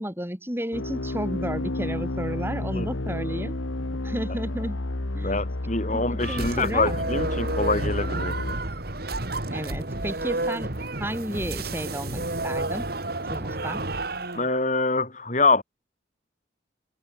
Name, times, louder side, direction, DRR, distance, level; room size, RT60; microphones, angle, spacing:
voice 1, 0.0-3.6 4.0-4.8 5.1-5.5 5.9-6.9 9.5-10.7 11.0-12.9 13.3-13.8, equal, 10° right, 6.4 m, -32 dB
sound 1, 0.7-8.6, left 2 dB, 85° left, 1.5 m, -31 dB
voice 2, 5.2-8.3 14.3-15.6, left 3 dB, 40° left, 4.2 m, -25 dB
sound 2, 6.2-14.5, right 2 dB, 50° right, 2.5 m, -31 dB
head